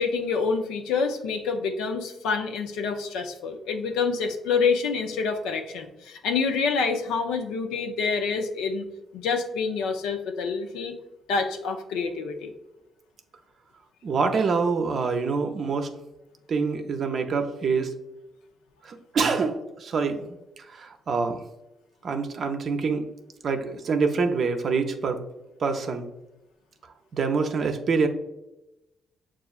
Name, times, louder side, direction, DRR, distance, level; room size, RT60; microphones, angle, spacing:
voice 1, 0.0-8.9 9.1-11.0 11.3-12.5, left 5 dB, 90° left, 5 dB, 0.5 m, -27 dB
voice 2, 14.0-15.9 16.5-17.9 18.8-21.4 22.0-23.1 23.4-25.2 25.6-26.1 27.1-28.1, right 4 dB, 60° right, 6 dB, 0.5 m, -26 dB
6.7 x 2.4 x 2.4 m, 0.95 s
supercardioid pair, 60°, 0 cm